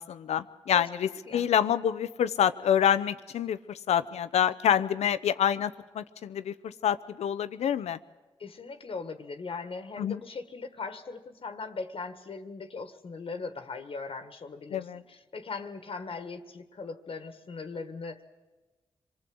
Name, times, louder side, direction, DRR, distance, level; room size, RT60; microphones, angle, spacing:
voice 1, 0.0-8.0 10.0-10.2 14.7-15.0, left 9 dB, 80° left, 13 dB, 0.8 m, -27 dB
voice 2, 0.7-1.5 8.4-18.2, left 4 dB, 55° left, 8 dB, 1.6 m, -39 dB
25.5 x 19.5 x 7.9 m, 1.2 s
supercardioid pair, 45°, 11 cm